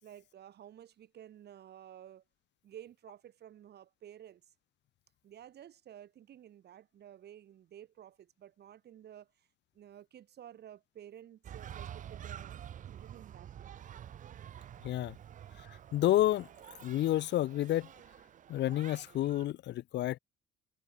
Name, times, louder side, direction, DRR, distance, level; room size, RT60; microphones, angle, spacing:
voice 1, 0.0-2.2 2.6-4.4 5.2-9.5 9.7-12.6 12.9-13.7 15.4-15.5, right 10 dB, 55° right, 2.0 m, -53 dB
sound 1, 11.4-19.5, right 10 dB, 40° right, 0.5 m, -48 dB
voice 2, 14.8-15.2 15.9-16.5 16.8-17.9 18.5-20.2, left 14 dB, 65° left, 0.8 m, -29 dB
cardioid pair, 115°, 20 cm